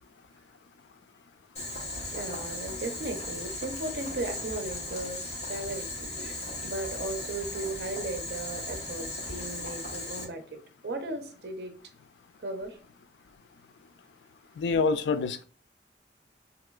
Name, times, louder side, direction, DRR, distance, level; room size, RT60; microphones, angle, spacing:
Boiling, 1.6-10.2, left 2 dB, 40° left, 0.9 m, -37 dB
voice 1, 2.1-6.1 6.6-11.8 12.4-12.8, right 2 dB, 65° right, 0.6 m, -36 dB
voice 2, 14.6-15.4, left 4 dB, 80° left, 0.3 m, -26 dB
2.9 x 2.9 x 2.3 m
head